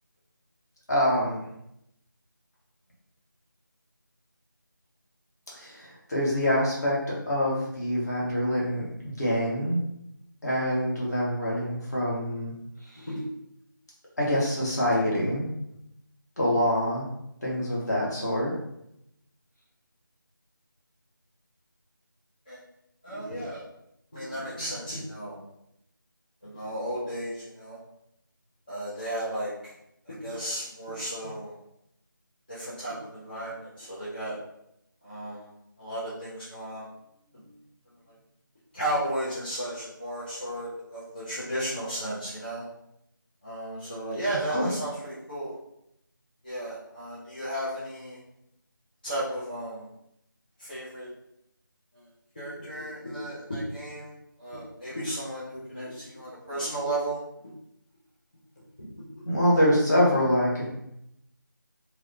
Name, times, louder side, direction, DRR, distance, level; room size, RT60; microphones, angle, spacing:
voice 1, 0.9-1.4 5.6-9.8 10.4-12.5 14.2-15.5 16.4-17.0 17.4-18.5 44.5-44.7 59.2-60.7, equal, 50° left, -6 dB, 1.1 m, -25 dB
voice 2, 23.0-23.6 24.1-25.4 26.4-27.8 28.7-29.7 30.1-31.5 32.5-34.4 35.0-35.5 35.8-36.9 37.3-37.4 38.7-42.6 43.4-45.6 46.4-48.2 49.0-49.9 50.6-51.1 51.9-52.0 52.4-54.1 54.4-57.2 59.1-59.2, right 1 dB, 25° left, -11 dB, 0.5 m, -34 dB
2.7 x 2.1 x 2.5 m, 0.80 s
figure-of-eight pair, 170°, 11 cm